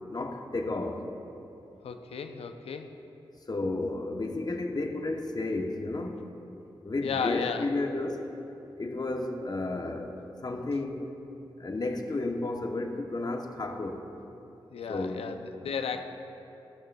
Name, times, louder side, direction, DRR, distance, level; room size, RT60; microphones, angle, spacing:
voice 1, 0.1-1.1 3.5-6.2 6.8-8.3 8.8-11.0 11.6-14.0 14.9-15.2, left 2 dB, 40° left, 4 dB, 0.8 m, -32 dB
voice 2, 1.8-3.0 7.0-7.7 14.7-16.0, left 6 dB, 85° left, 7 dB, 0.5 m, -34 dB
15.0 x 6.3 x 2.3 m, 2.9 s
cardioid pair, 40°, 10 cm